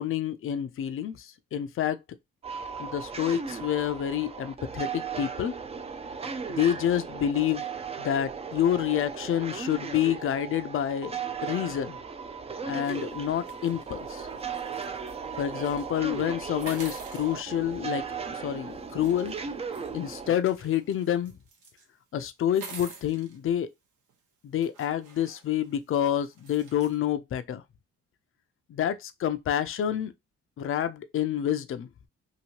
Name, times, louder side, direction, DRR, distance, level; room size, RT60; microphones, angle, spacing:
voice 1, 0.0-2.0 2.8-5.5 6.5-7.7 8.0-11.1 11.4-12.0 12.7-14.3 15.4-18.1 18.3-19.4 19.9-21.3 22.1-23.7 24.4-27.6 28.7-30.1 30.6-31.9, left 10 dB, 45° left, 0.5 m, -28 dB
sound 1, 2.4-20.4, right 5 dB, 20° right, 0.4 m, -37 dB
sound 2, 12.8-15.2 15.5-15.9 16.6-18.3 19.0-21.8 22.4-23.4 24.1-24.2 24.6-27.0, right 5 dB, 85° right, 1.0 m, -48 dB
2.9 x 2.7 x 2.9 m
cardioid pair, 90°, 30 cm